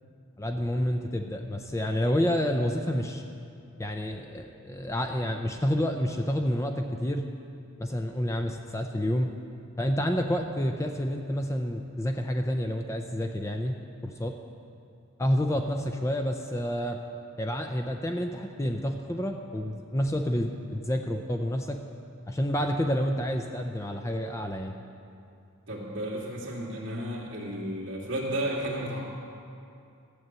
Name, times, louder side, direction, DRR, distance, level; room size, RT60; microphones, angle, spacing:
voice 1, 0.4-3.2 3.8-7.3 7.8-9.3 9.8-14.4 15.2-17.0 17.4-21.8 22.3-24.8, equal, 15° left, 4 dB, 0.5 m, -29 dB
voice 2, 25.7-29.0, right 1 dB, 55° right, -3 dB, 2.6 m, -33 dB
14.0 x 8.0 x 7.5 m, 2.5 s
head